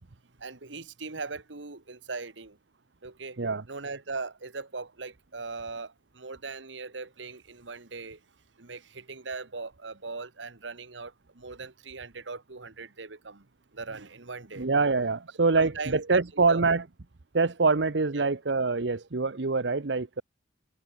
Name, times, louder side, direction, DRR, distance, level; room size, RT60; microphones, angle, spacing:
voice 1, 0.4-2.6 3.0-3.4 3.7-8.2 8.6-13.4 13.7-14.7 15.6-16.6 18.1-18.3, right 4 dB, 90° right, 1.7 m, -39 dB
voice 2, 14.6-16.8 17.3-20.2, right 4 dB, 70° right, 0.9 m, -25 dB
head